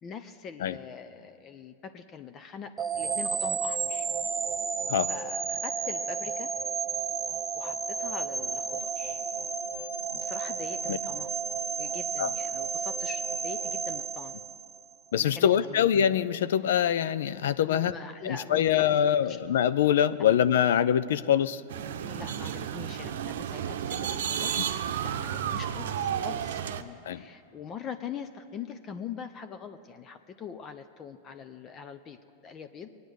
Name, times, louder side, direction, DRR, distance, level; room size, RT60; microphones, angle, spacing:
voice 1, 0.0-4.1 5.1-6.5 7.6-9.2 10.1-11.3 11.8-14.3 15.2-15.9 17.7-19.0 19.3-19.4 22.0-24.6 25.0-32.2 32.4-32.9, left 6 dB, 30° left, 9 dB, 0.7 m, -43 dB
sound 1, 2.8-14.9, right 5 dB, 15° right, 0.7 m, -32 dB
voice 2, 15.1-17.9 18.2-21.6 27.1-27.2, left 9 dB, 75° left, 15 dB, 0.5 m, -24 dB
sound 2, 21.7-26.8, right 9 dB, 75° right, 0.7 m, -32 dB
22.0 x 9.5 x 6.4 m, 2.6 s
hypercardioid pair, 110°, 0 cm